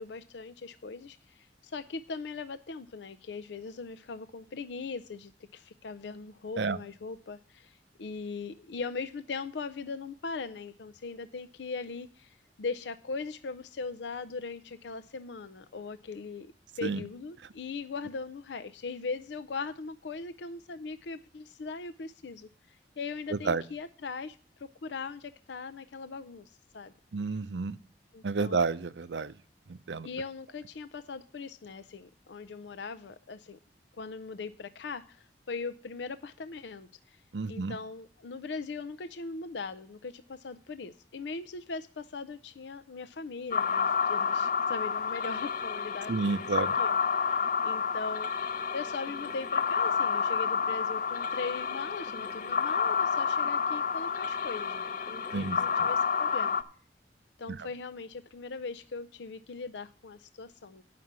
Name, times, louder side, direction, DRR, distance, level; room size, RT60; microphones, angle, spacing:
voice 1, 0.0-16.5 16.8-26.9 28.1-28.6 30.0-33.6 33.9-37.2 37.5-46.4 46.7-56.6 57.4-60.8, left 4 dB, 80° left, 10 dB, 0.5 m, -40 dB
voice 2, 27.1-27.8 28.2-29.3 29.9-30.1 37.3-37.8 46.1-46.7 55.3-55.6 57.5-57.6, right 4 dB, 80° right, 14 dB, 0.6 m, -30 dB
sound 1, 43.5-56.6, left 6 dB, 50° left, 0.8 m, -30 dB
9.5 x 5.8 x 7.3 m, 0.41 s
head